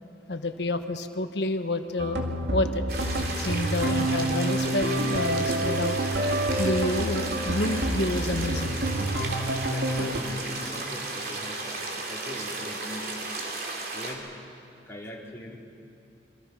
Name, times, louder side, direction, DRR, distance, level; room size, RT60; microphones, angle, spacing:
voice 1, 0.3-2.2 2.5-2.8 3.4-6.0 6.6-8.8, left 2 dB, 70° left, 8 dB, 1.3 m, -29 dB
sound 1, 2.0-10.2, right 1 dB, 85° right, 2.3 m, -28 dB
sound 2, 2.9-14.1, right 2 dB, 60° right, 3.2 m, -34 dB
voice 2, 9.7-13.4 13.9-14.2 14.9-15.6, left 1 dB, 15° left, -4 dB, 3.3 m, -41 dB
27.0 x 24.5 x 5.8 m, 2.6 s
head